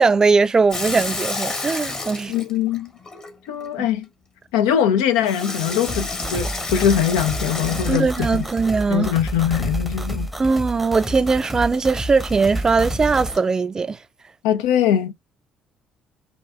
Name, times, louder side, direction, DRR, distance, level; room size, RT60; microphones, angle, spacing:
voice 1, 0.0-2.3 3.8-3.9 7.9-9.1 10.4-14.0, right 4 dB, 30° right, 0.3 m, -20 dB
Water tap faucet / Sink (filling or washing), 0.7-3.7 5.2-9.0 11.0-13.5, left 3 dB, 40° left, 1.5 m, -32 dB
voice 2, 2.3-2.9 3.5-4.1 4.5-8.4 8.9-10.3 14.4-15.1, left 9 dB, 80° left, 0.4 m, -21 dB
sound 1, 5.9-13.4, right 1 dB, ahead, 0.7 m, -29 dB
4.4 x 2.6 x 2.2 m
hypercardioid pair, 55°, 2 cm